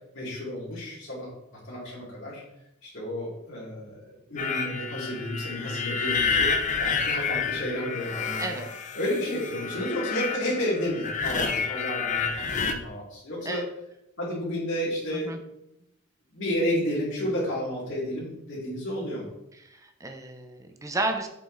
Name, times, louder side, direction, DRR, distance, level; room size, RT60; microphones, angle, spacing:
voice 1, 0.1-1.3 1.7-2.4 2.8-8.6 8.9-13.6 14.2-15.4 16.3-19.3, equal, 60° left, -10 dB, 3.1 m, -31 dB
sound 1, 4.4-12.7, left 5 dB, 35° left, 0.7 m, -29 dB
voice 2, 19.6-21.3, right 2 dB, 15° right, 5 dB, 0.8 m, -32 dB
7.8 x 5.5 x 4.1 m, 0.84 s
head